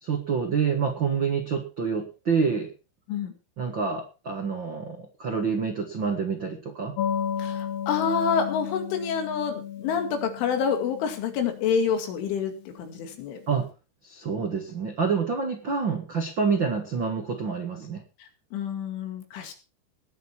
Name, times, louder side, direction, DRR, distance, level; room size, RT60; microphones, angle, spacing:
voice 1, 0.0-2.7 3.6-7.0 13.5-13.7 14.0-18.0, right 5 dB, 70° right, 4 dB, 1.1 m, -27 dB
sound 1, 7.0-13.2, left 9 dB, 65° left, 3.2 m, -34 dB
voice 2, 7.4-13.4 18.2-19.5, left 6 dB, 85° left, 6 dB, 4.7 m, -28 dB
20.0 x 8.0 x 4.5 m, 0.32 s
omnidirectional pair, 5.4 m